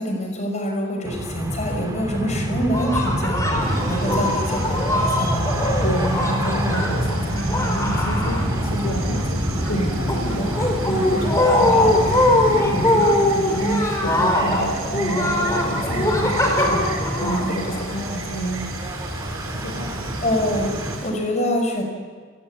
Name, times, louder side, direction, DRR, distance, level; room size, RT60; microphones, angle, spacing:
voice 1, 0.0-5.5 11.7-12.0 17.4-17.9 20.2-21.8, equal, 35° left, 3 dB, 5.5 m, -26 dB
sound 1, 1.1-21.0, equal, 15° right, 3.0 m, -27 dB
sound 2, 2.7-8.9 9.2-18.1, left 1 dB, 15° left, 4.5 m, -22 dB
Insect, 3.6-21.1, right 4 dB, 85° right, 6.4 m, -36 dB
voice 2, 5.8-9.4 9.7-10.6 10.9-16.8 17.2-18.8 19.6-19.9, right 1 dB, 65° left, 3 dB, 3.2 m, -29 dB
29.5 x 18.5 x 8.4 m, 1.5 s
head